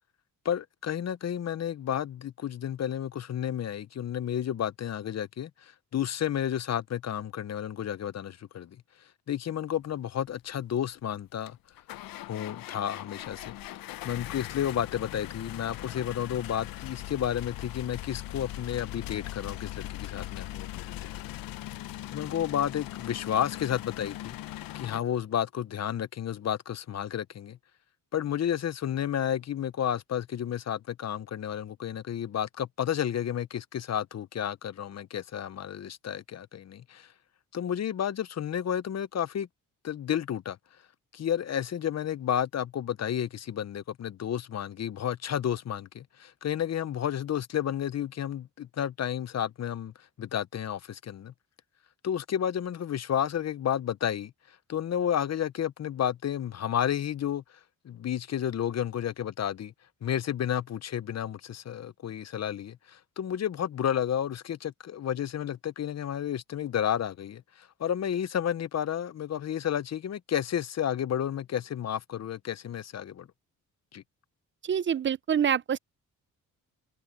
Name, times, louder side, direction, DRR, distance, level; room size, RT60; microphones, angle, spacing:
voice 1, 0.4-8.8 9.3-11.6 12.3-13.5 14.0-21.3 22.1-24.4 24.7-27.6 28.1-37.1 37.5-39.5 39.8-40.6 41.1-51.3 52.0-57.4 57.8-59.7 60.0-73.3 73.9-74.0, left 9 dB, 50° left, 0.8 m, -31 dB
sound 1, 10.8-10.9 11.4-25.0, left 15 dB, 90° left, 0.7 m, -40 dB
voice 2, 74.6-75.8, right 8 dB, 35° right, 0.6 m, -26 dB
cardioid pair, 85°, 34 cm